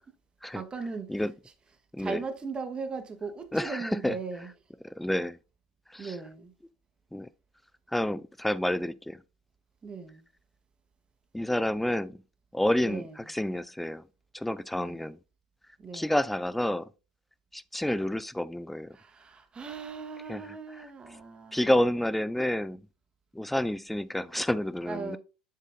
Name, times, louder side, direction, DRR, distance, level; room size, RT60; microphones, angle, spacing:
voice 1, 0.5-1.5 2.0-4.5 6.0-6.5 9.8-10.3 12.8-13.2 14.7-15.1 15.8-16.3 18.9-22.3 24.8-25.2, right 4 dB, 25° right, 1.3 m, -39 dB
voice 2, 3.5-4.2 4.8-5.4 5.9-6.1 7.1-7.3 7.9-9.2 11.3-12.2 12.5-14.0 14.3-15.2 15.9-16.9 17.5-19.0 20.3-20.9 21.5-22.8 23.3-25.2, left 1 dB, 5° left, 0.4 m, -29 dB
7.4 x 6.8 x 2.6 m
hypercardioid pair, 75°, 4 cm